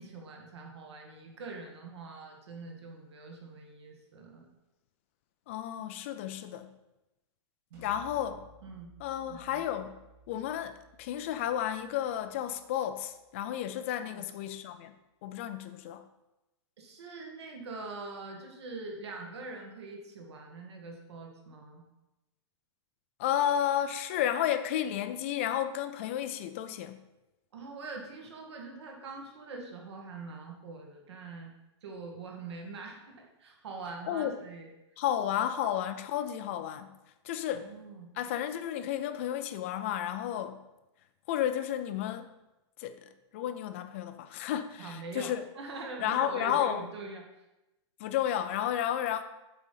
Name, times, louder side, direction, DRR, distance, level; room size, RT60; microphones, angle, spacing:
voice 1, 0.0-4.5 7.7-7.9 8.6-8.9 9.3-9.6 14.0-14.2 16.8-21.8 27.5-31.5 31.8-34.7 37.5-38.1 44.8-47.2, right 3 dB, 65° right, 1 dB, 1.7 m, -43 dB
voice 2, 5.5-6.7 7.8-8.4 9.0-10.0 10.3-14.9 15.2-16.0 23.2-27.0 34.1-34.4 35.0-36.9 37.2-37.7 38.1-40.6 41.3-42.3 42.8-45.4 46.0-46.8 48.0-49.2, left 10 dB, 25° left, 10 dB, 0.4 m, -32 dB
sound 1, 7.7-13.4, right 2 dB, 25° right, 2.1 m, -58 dB
8.2 x 4.0 x 5.5 m, 0.97 s
supercardioid pair, 175°, 15 cm